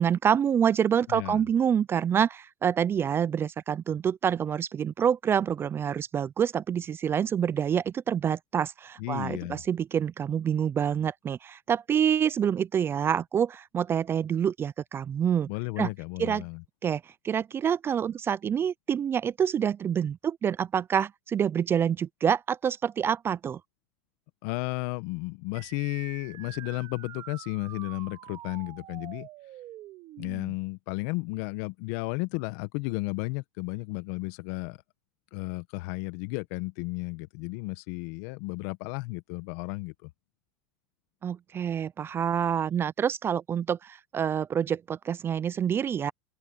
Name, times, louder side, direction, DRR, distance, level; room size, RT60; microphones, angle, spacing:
voice 1, 0.0-15.5 15.8-15.9 16.2-16.5 16.8-23.6 41.2-46.1, right 8 dB, 25° right, 0.4 m, -27 dB
voice 2, 1.1-1.4 9.0-9.6 15.5-16.6 24.4-29.3 30.2-34.8 35.3-40.1, left 24 dB, 60° left, 1.4 m, -33 dB
sound 1, 25.5-30.5, right 14 dB, 45° right, 2.0 m, -45 dB
open air
supercardioid pair, 115°, 10 cm